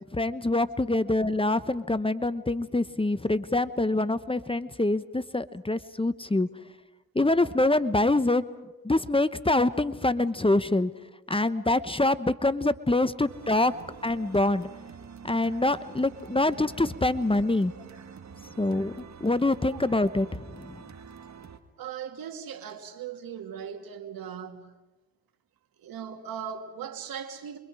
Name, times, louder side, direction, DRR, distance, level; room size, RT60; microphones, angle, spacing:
voice 1, 0.1-6.5 7.1-8.4 8.8-10.9 11.3-13.7 14.0-14.7 15.2-17.7 18.6-20.8, left 2 dB, 15° left, 1.0 m, -25 dB
sound 1, 13.3-21.6, right 6 dB, 50° right, 1.8 m, -46 dB
voice 2, 21.8-24.7 25.8-27.6, right 8 dB, 80° right, 2.2 m, -39 dB
29.0 x 23.5 x 4.9 m
supercardioid pair, 50°, 35 cm